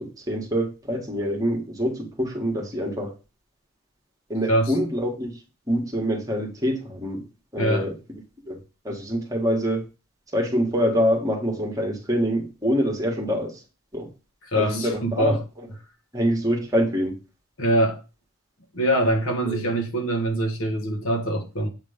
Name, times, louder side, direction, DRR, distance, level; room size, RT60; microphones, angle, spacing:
voice 1, 0.0-3.1 4.3-5.4 5.7-7.2 7.5-7.9 8.5-9.8 10.3-13.6 13.9-14.1 14.5-15.4 16.1-17.2 19.4-19.7, equal, 15° right, 1.7 m, -25 dB
voice 2, 7.6-7.9 14.4-15.4 17.6-18.0 18.7-21.7, right 1 dB, 65° left, 1.3 m, -23 dB
8.0 x 3.6 x 5.0 m
head